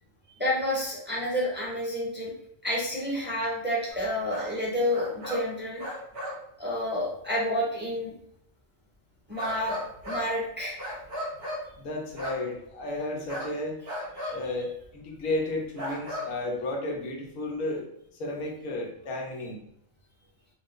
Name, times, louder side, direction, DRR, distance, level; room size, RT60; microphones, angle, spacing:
voice 1, 0.4-2.3 2.6-5.8 6.6-8.1 9.3-10.8 14.2-14.3, left 1 dB, 10° right, -5 dB, 0.9 m, -29 dB
sound 1, 3.9-4.0 4.3-4.6 4.9-5.5 5.8-6.4 9.4-10.3 10.8-11.7 12.2-12.4 13.3-13.5 13.9-14.4 14.8-14.9 15.8-16.3, equal, 50° right, 1.2 m, -35 dB
voice 2, 11.8-13.8 14.3-17.9 18.2-19.6, left 2 dB, 85° left, 0 dB, 1.2 m, -33 dB
4.1 x 2.1 x 3.7 m, 0.70 s
omnidirectional pair, 1.4 m